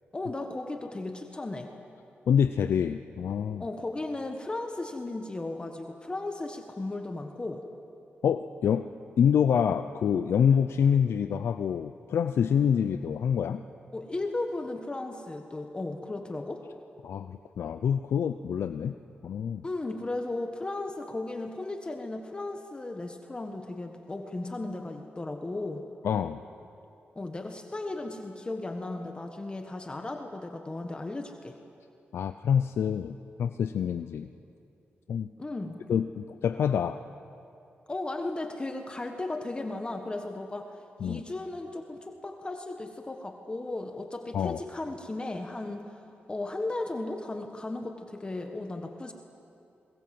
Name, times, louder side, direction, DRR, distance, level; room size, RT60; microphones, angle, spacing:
voice 1, 0.1-1.7 3.6-7.6 13.9-16.6 19.6-25.8 27.1-31.6 35.4-35.8 37.9-40.7 41.0-45.9 46.3-49.1, left 2 dB, 25° left, 4 dB, 1.6 m, -35 dB
voice 2, 2.3-3.6 8.2-8.9 9.2-13.6 17.0-18.9 19.2-19.7 26.0-26.4 32.1-34.3 35.1-35.3 35.9-37.0 41.0-41.2 44.3-44.6, left 8 dB, 85° left, 9 dB, 0.6 m, -26 dB
28.5 x 22.0 x 7.8 m, 2.7 s
wide cardioid pair, 105°, 4 cm